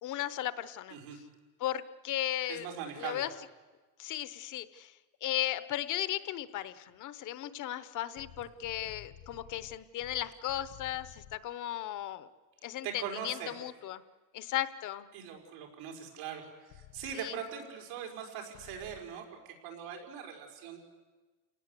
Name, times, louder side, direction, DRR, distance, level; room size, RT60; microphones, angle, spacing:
voice 1, 0.0-1.0 1.6-2.7 3.0-3.3 4.0-4.9 5.2-12.3 12.6-14.0 14.3-15.1 17.2-17.4, left 13 dB, 45° left, 14 dB, 0.9 m, -36 dB
voice 2, 2.5-3.3 12.8-13.6 15.1-20.8, right 8 dB, 90° right, 2 dB, 5.3 m, -41 dB
sound 1, 8.2-11.4 16.7-17.2 18.5-19.0, left 11 dB, 80° left, 1.6 m, -53 dB
29.5 x 18.5 x 8.3 m, 1.3 s
cardioid pair, 180°, 44 cm